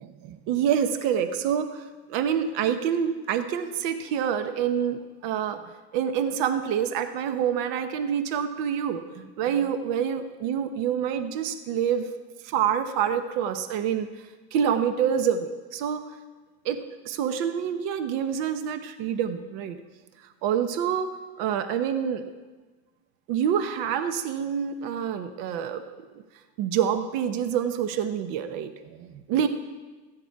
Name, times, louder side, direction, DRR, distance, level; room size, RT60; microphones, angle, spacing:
voice 1, 0.0-1.8 2.1-5.6 5.9-12.1 12.4-14.1 14.5-16.0 16.6-19.8 20.4-21.1 21.4-22.2 23.3-25.8 26.6-29.5, right 8 dB, 80° right, 8 dB, 1.0 m, -27 dB
14.5 x 9.9 x 4.7 m, 1.3 s
cardioid pair, 120°, 34 cm